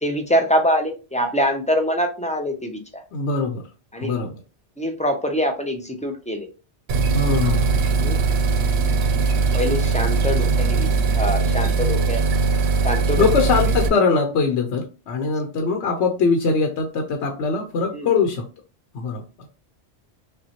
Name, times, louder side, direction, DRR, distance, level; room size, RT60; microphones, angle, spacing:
voice 1, 0.0-3.0 3.9-4.1 4.8-6.5 8.0-8.2 9.5-10.9 11.1-12.2 12.8-13.3 17.9-18.1, equal, 10° left, 3 dB, 0.4 m, -24 dB
voice 2, 3.1-3.6 4.0-4.4 7.1-7.7 13.2-18.4 18.9-19.2, left 4 dB, 85° left, 4 dB, 1.0 m, -22 dB
sound 1, 6.9-13.9, right 4 dB, 70° right, 0.9 m, -20 dB
5.4 x 2.2 x 2.9 m, 0.33 s
omnidirectional pair, 1.1 m